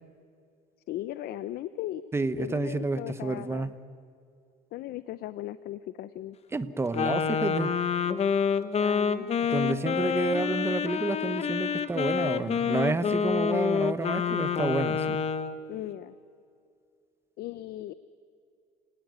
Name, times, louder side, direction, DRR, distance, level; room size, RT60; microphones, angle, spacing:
voice 1, 0.9-2.0 2.4-3.7 4.7-6.4 8.8-9.3 15.7-16.1 17.4-17.9, left 13 dB, 70° left, 15 dB, 0.7 m, -37 dB
voice 2, 2.1-3.7 6.5-7.7 9.5-15.2, right 3 dB, 15° right, 13 dB, 1.0 m, -30 dB
Wind instrument woodwind instrument, 6.9-15.5, left 6 dB, 40° left, 1.1 m, -27 dB
29.5 x 18.5 x 9.6 m, 2.4 s
cardioid pair, 130°, 17 cm